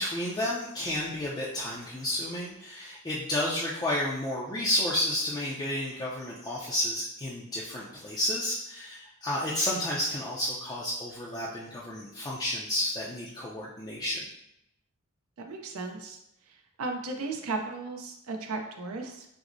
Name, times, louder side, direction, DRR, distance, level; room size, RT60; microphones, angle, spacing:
voice 1, 0.0-14.2, left 1 dB, 20° left, -6 dB, 0.4 m, -31 dB
voice 2, 15.5-16.2 16.8-19.3, right 3 dB, 70° right, 3 dB, 0.5 m, -35 dB
6.0 x 2.0 x 2.6 m, 0.82 s
head